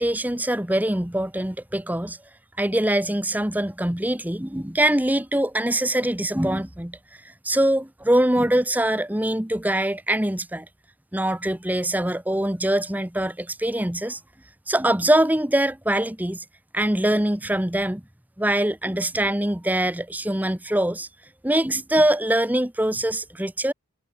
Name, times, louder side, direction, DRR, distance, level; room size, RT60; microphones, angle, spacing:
voice 1, 0.0-2.2 2.6-7.0 7.4-10.7 11.1-14.2 14.7-16.4 16.7-18.0 18.4-21.1 21.4-23.7, right 1 dB, 10° right, 0.9 m, -23 dB
head